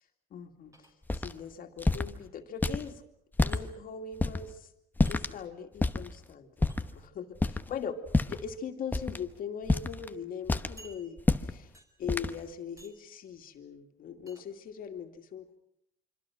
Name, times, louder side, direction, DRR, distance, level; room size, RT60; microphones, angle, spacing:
voice 1, 0.3-0.8 1.1-3.0 3.4-4.7 5.1-6.5 6.8-11.7 12.0-15.6, left 6 dB, 55° left, 5 dB, 2.5 m, -40 dB
sound 1, 0.7-1.3 3.5-3.6 5.0-5.2 6.7-6.8 8.1-8.4 9.2-9.3 9.6-9.7 10.8-11.4 11.7-12.1 12.8-13.1 14.3-14.5, right 2 dB, 20° right, 4.8 m, -55 dB
sound 2, 1.1-1.3 1.8-2.1 2.6-2.8 3.3-3.6 4.2-4.4 5.0-5.3 5.8-6.1 6.6-6.9 7.4-7.7 8.1-8.5 8.9-9.2 9.7-10.1 10.5-10.8 11.2-11.5 12.1-12.3, left 2 dB, 10° left, 1.0 m, -27 dB
26.0 x 25.5 x 6.1 m, 0.77 s
cardioid pair, 110°, 17 cm